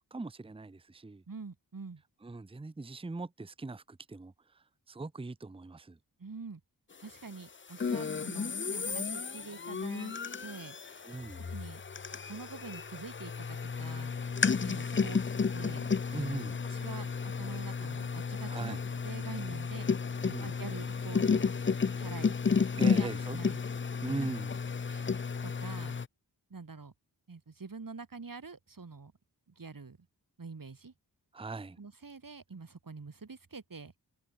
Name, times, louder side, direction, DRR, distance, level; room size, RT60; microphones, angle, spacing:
voice 1, 0.1-1.2 2.2-4.3 4.9-6.0 11.1-11.5 16.1-16.6 18.5-18.8 20.2-20.5 22.8-23.4 24.0-24.6 31.3-31.8, right 3 dB, 15° right, 0.6 m, -39 dB
voice 2, 1.3-2.0 6.2-6.6 7.0-10.2 10.4-11.1 11.4-11.8 12.3-14.1 14.6-15.2 15.5-15.9 16.6-18.8 19.0-19.9 20.4-21.6 22.0-22.3 22.7-23.6 24.2-24.3 24.9-25.1 25.4-26.0 26.5-26.9 27.3-29.1 29.6-30.0 30.4-30.9 31.8-33.9, right 4 dB, 55° right, 3.0 m, -45 dB
sound 1, 7.8-26.1, left 5 dB, 30° left, 0.5 m, -32 dB
wide cardioid pair, 80°, 39 cm